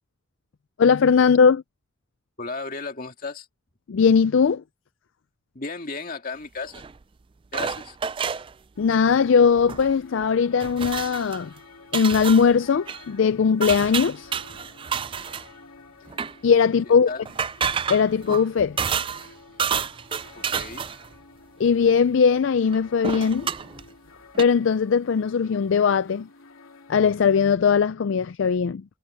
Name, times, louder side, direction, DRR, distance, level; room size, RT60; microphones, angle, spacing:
voice 1, 0.8-1.6 3.9-4.6 8.8-11.5 11.9-14.3 16.4-17.1 17.9-18.8 21.6-23.5 24.4-26.3 26.9-28.8, left 6 dB, 60° left, 0.4 m, -19 dB
voice 2, 2.4-3.5 5.5-6.8 7.5-8.0 16.9-17.2 20.3-20.9, left 3 dB, 40° left, 2.3 m, -34 dB
sound 1, 6.7-6.9 7.5-8.5 9.6-9.9 10.2-10.3 10.6-11.4 11.9-12.5 12.9-13.0 13.6-15.5 16.1-16.3 17.3-19.3 19.6-21.1 22.7-22.8 23.0-23.8 24.3-24.4, right 7 dB, 25° right, 0.3 m, -29 dB
sound 2, 8.7-27.5, left 4 dB, 80° left, 3.1 m, -50 dB
head